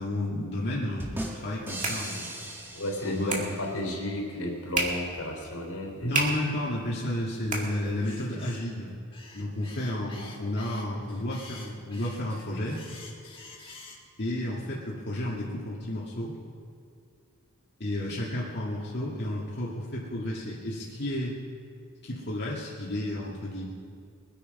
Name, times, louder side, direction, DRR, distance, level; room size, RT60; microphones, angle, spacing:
voice 1, 0.0-3.6 6.0-8.9 9.3-12.8 14.2-16.4 17.8-21.3 22.0-23.6, left 1 dB, 50° left, -5 dB, 1.9 m, -32 dB
sound 1, 1.0-3.8, right 1 dB, 10° right, 1.8 m, -38 dB
sound 2, 1.3-8.3, right 3 dB, 35° right, 2.3 m, -36 dB
voice 2, 2.7-6.2, left 1 dB, 75° left, 1 dB, 3.5 m, -33 dB
sound 3, 8.0-8.7 9.1-14.1, left 3 dB, 25° left, 1.6 m, -48 dB
22.5 x 9.1 x 5.4 m, 2.3 s
head